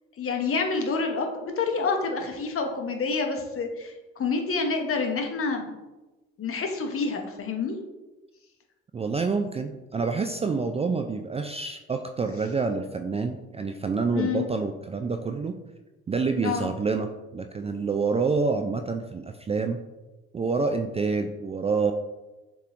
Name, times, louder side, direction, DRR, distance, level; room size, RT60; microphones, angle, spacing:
voice 1, 0.2-5.7 6.4-7.8 14.1-14.5 16.3-16.7, left 4 dB, 45° left, 4 dB, 0.9 m, -28 dB
voice 2, 8.9-15.6 16.1-19.8 20.3-21.9, right 4 dB, 20° right, 6 dB, 0.3 m, -27 dB
6.6 x 3.1 x 2.5 m, 1.1 s
hypercardioid pair, 50°, 32 cm